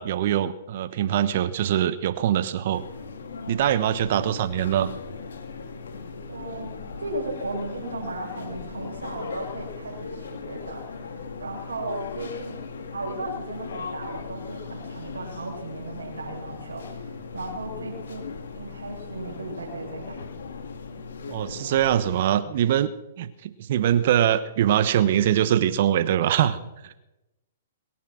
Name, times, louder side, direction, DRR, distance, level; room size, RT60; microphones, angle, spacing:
voice 1, 0.0-2.8 3.5-4.9 21.3-22.9 23.2-27.0, right 10 dB, 55° right, 13 dB, 1.2 m, -23 dB
sound 1, 2.7-22.2, left 4 dB, 70° left, 2.2 m, -38 dB
voice 2, 4.1-4.6 6.3-12.6 12.9-18.2 18.5-20.2, right 2 dB, 85° right, -1 dB, 6.7 m, -36 dB
23.0 x 10.0 x 6.1 m, 0.96 s
hypercardioid pair, 120°, 0 cm